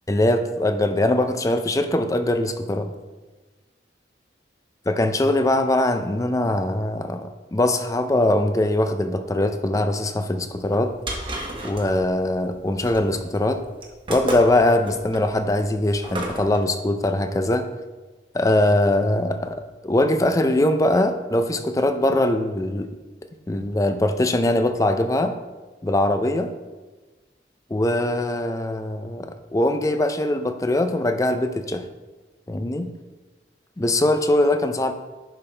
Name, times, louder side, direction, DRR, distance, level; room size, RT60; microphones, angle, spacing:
voice 1, 0.1-2.9 4.9-10.9 11.6-13.6 14.1-17.7 18.3-22.9 23.5-25.4 25.8-26.5 27.7-31.9 32.5-32.9 33.8-34.9, left 1 dB, 20° left, 8 dB, 0.5 m, -22 dB
sound 1, 10.6-16.6, right 1 dB, 30° right, 1.2 m, -32 dB
10.5 x 5.6 x 3.3 m, 1.2 s
head